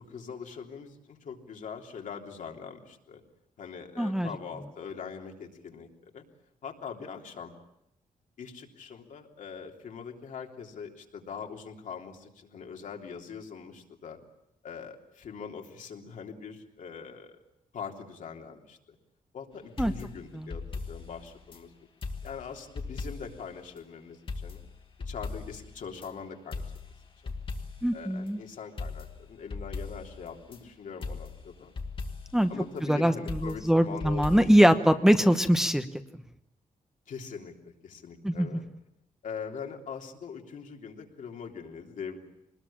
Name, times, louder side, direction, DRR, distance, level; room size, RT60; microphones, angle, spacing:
voice 1, 0.0-3.2 3.6-5.9 6.1-6.2 6.6-7.5 8.4-14.2 14.6-17.4 17.7-18.8 19.3-21.7 22.2-24.6 25.1-26.6 27.2-27.3 27.9-31.8 32.5-34.7 37.1-38.6 39.2-42.2, left 6 dB, 70° left, 2 dB, 3.3 m, -42 dB
voice 2, 4.0-4.3 19.8-19.9 20.3-20.5 27.8-28.4 32.3-32.5 32.9-35.9 38.2-38.5, equal, 5° right, 7 dB, 1.0 m, -22 dB
sound 1, 19.8-21.6 22.0-23.5 23.8-23.9 24.3-26.1 26.5-28.0 28.3-28.4 28.8-30.6 31.0-32.5 33.3-34.6, left 4 dB, 40° left, 2.2 m, -39 dB
25.5 x 20.0 x 8.7 m, 0.81 s
wide cardioid pair, 155°, 14 cm